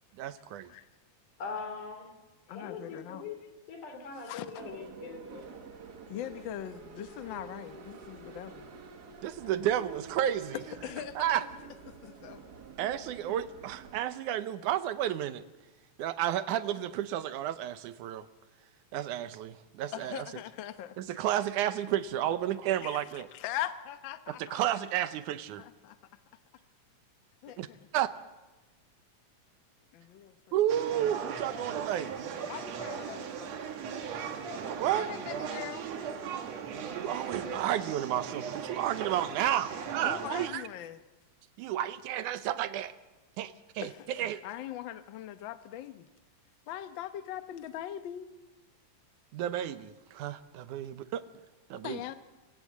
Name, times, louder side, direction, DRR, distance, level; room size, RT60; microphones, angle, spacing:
voice 1, 0.2-0.7 9.2-10.6 11.2-11.4 12.8-15.4 16.0-18.3 18.9-20.3 21.0-23.3 24.5-25.6 27.6-27.7 27.9-28.1 30.5-32.2 34.8-35.1 37.0-40.6 41.6-42.9 43.4-43.9 44.2-44.4 49.3-51.2 51.7-52.0, right 11 dB, 85° right, 12 dB, 2.4 m, -31 dB
voice 2, 1.4-2.1 2.5-3.4 3.7-5.8, left 5 dB, 90° left, 5 dB, 5.0 m, -42 dB
voice 3, 2.5-3.2 4.0-4.7 6.1-8.7 10.8-11.3 11.9-12.6 13.3-13.4 19.9-21.0 21.7-21.9 22.8-24.8 25.6-26.0 27.4-27.9 29.9-30.6 32.4-33.5 34.2-35.9 40.0-41.0 43.8-46.1 46.7-48.3 51.7-52.1, left 12 dB, 65° left, 10 dB, 1.2 m, -41 dB
sound 1, 4.6-14.0, right 5 dB, 45° right, 1.3 m, -48 dB
sound 2, 30.7-40.5, right 7 dB, 65° right, 2.5 m, -38 dB
27.5 x 16.5 x 7.4 m, 1.1 s
omnidirectional pair, 3.5 m